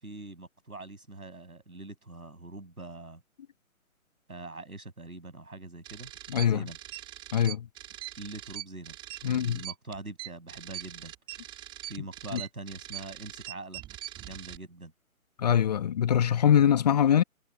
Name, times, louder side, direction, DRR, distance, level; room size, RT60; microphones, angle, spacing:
voice 1, 0.0-3.2 4.3-6.1 6.4-6.8 8.2-9.0 9.2-11.1 11.9-13.8 14.2-14.9 16.6-16.7, right 2 dB, 85° right, 6.9 m, -43 dB
sound 1, 5.8-14.6, right 14 dB, 10° right, 3.1 m, -42 dB
voice 2, 6.3-6.6 7.3-7.7 9.2-9.6 12.3-12.4 15.4-17.2, left 9 dB, 30° left, 1.3 m, -23 dB
figure-of-eight pair, 145°, 43 cm